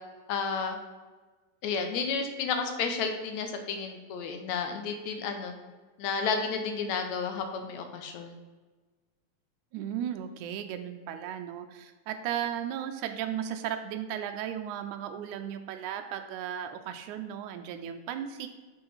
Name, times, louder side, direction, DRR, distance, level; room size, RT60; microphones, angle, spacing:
voice 1, 0.3-0.8 1.6-5.5 6.0-8.4, left 5 dB, 80° left, 5 dB, 2.0 m, -31 dB
voice 2, 9.7-18.5, right 10 dB, 85° right, 6 dB, 2.0 m, -35 dB
6.3 x 5.5 x 5.5 m, 1.3 s
omnidirectional pair, 3.4 m